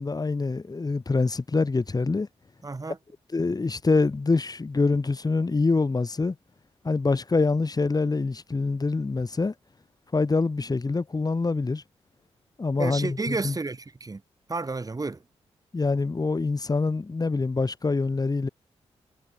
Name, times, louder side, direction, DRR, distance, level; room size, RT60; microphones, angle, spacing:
voice 1, 0.0-2.3 3.3-6.3 6.8-9.5 10.1-11.8 12.6-13.5 15.7-18.5, left 3 dB, 35° left, 4.6 m, -25 dB
voice 2, 2.6-3.0 12.8-14.2 14.5-15.2, right 3 dB, 30° right, 6.3 m, -31 dB
cardioid pair, 60°, 12 cm